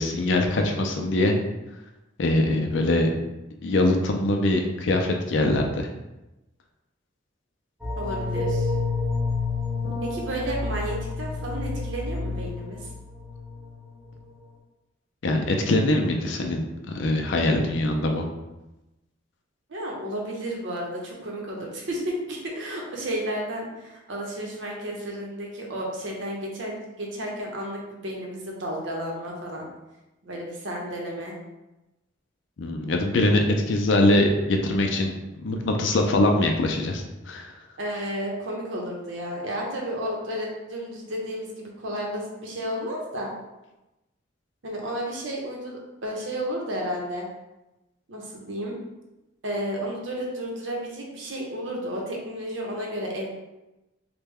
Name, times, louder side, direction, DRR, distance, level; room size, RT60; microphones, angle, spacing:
voice 1, 0.0-1.4 2.2-3.1 3.6-5.9 15.2-16.6 16.9-18.2 32.6-35.1 35.4-37.5, left 1 dB, 65° left, 3 dB, 0.4 m, -22 dB
sound 1, 7.8-13.8 14.1-14.2, left 3 dB, ahead, 0.6 m, -29 dB
voice 2, 8.0-8.7 10.0-12.9 19.7-29.7 30.2-31.4 37.8-43.3 44.6-47.3 48.1-48.8 49.4-53.3, equal, 75° right, -1 dB, 0.8 m, -32 dB
3.3 x 2.2 x 3.4 m, 0.99 s
head